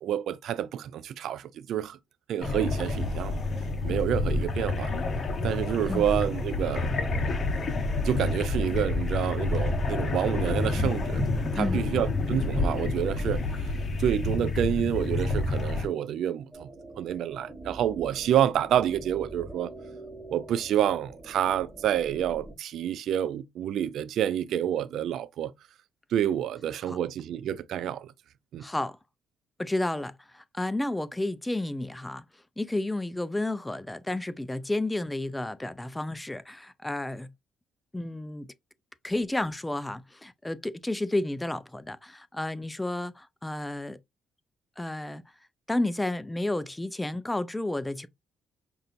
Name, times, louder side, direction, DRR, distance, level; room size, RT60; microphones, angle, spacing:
voice 1, 0.0-2.0 2.3-3.4 3.8-4.9 5.4-6.9 8.0-11.2 11.6-13.4 14.0-16.7 17.0-19.7 20.3-25.5 26.1-28.1 28.5-28.7, right 10 dB, 70° right, 0.3 m, -28 dB
sound 1, 2.4-15.9, left 2 dB, 40° left, 1.0 m, -28 dB
sound 2, 16.5-22.5, right 1 dB, 15° right, 1.3 m, -45 dB
voice 2, 28.6-29.0 29.6-32.2 32.6-37.3 37.9-38.5 39.0-44.0 44.8-45.2 45.7-48.1, left 1 dB, 10° left, 0.4 m, -31 dB
5.4 x 2.7 x 2.5 m
cardioid pair, 85°, 0 cm